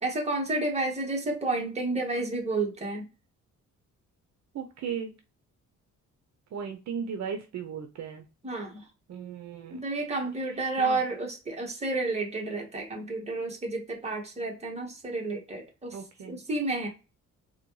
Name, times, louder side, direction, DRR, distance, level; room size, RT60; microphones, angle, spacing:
voice 1, 0.0-3.1 8.4-8.8 9.7-16.0 16.2-16.9, right 2 dB, 20° right, 1.2 m, -31 dB
voice 2, 4.5-5.1 6.5-8.3 9.1-9.8 10.8-11.0 15.9-16.4, right 6 dB, 60° right, 0.6 m, -36 dB
4.1 x 2.2 x 3.0 m
cardioid pair, 130°, 32 cm